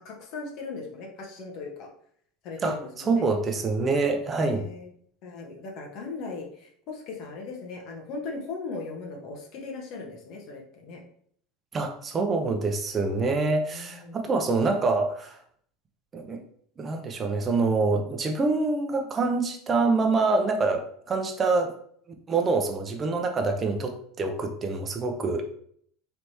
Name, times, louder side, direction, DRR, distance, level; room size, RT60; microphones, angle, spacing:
voice 1, 0.0-1.9 2.4-3.3 4.4-4.9 5.2-11.0 13.7-14.2, left 4 dB, 55° left, 0 dB, 1.1 m, -38 dB
voice 2, 2.6-4.6 11.7-15.4 16.1-16.4 16.8-21.7 22.3-25.4, right 3 dB, 25° right, 4 dB, 0.7 m, -26 dB
3.4 x 3.0 x 4.1 m, 0.63 s
supercardioid pair, 125°, 0 cm